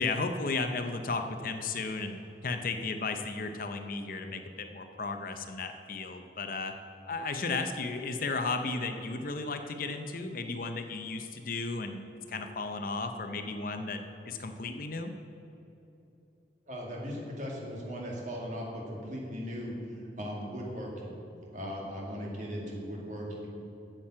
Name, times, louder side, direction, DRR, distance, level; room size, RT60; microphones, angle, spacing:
voice 1, 0.0-2.2 2.4-6.7 7.1-14.0 14.3-15.1, left 3 dB, 50° left, 7 dB, 0.6 m, -34 dB
voice 2, 16.7-21.1 21.5-23.5, equal, 40° right, -2 dB, 2.1 m, -38 dB
8.9 x 7.4 x 7.4 m, 3.0 s
head